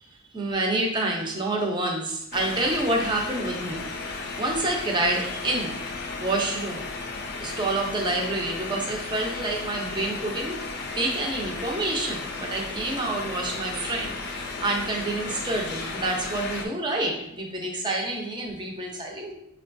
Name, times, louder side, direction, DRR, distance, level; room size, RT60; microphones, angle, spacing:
voice 1, 0.3-5.8 6.2-6.9 7.4-10.6 11.0-19.3, right 2 dB, 20° right, 0 dB, 0.5 m, -28 dB
sound 1, 2.3-16.7, left 3 dB, 50° left, 0.4 m, -34 dB
5.5 x 2.3 x 2.5 m, 0.79 s
head